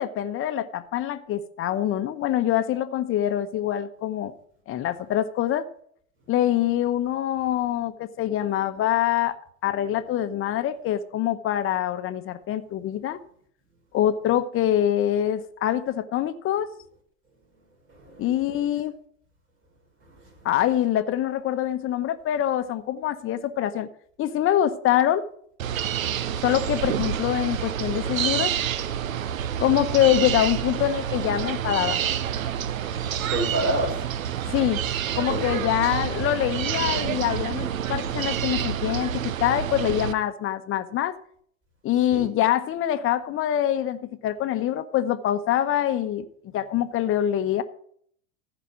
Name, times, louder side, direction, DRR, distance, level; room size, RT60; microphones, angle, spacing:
voice 1, 0.0-4.3 4.7-5.6 6.3-9.3 9.6-13.2 13.9-16.7 18.2-18.9 20.4-23.9 24.2-25.2 26.4-28.5 29.6-32.0 34.5-34.8 35.1-41.1 41.8-46.2 46.5-47.6, left 11 dB, 35° left, 1.0 m, -24 dB
voice 2, 17.9-18.7 20.0-20.5 33.3-34.4 35.3-35.6 42.1-42.3, right 1 dB, 30° right, 5.6 m, -30 dB
sound 1, 25.6-40.1, right 9 dB, 85° right, 0.8 m, -28 dB
15.0 x 5.1 x 6.0 m
hypercardioid pair, 100°, 40 cm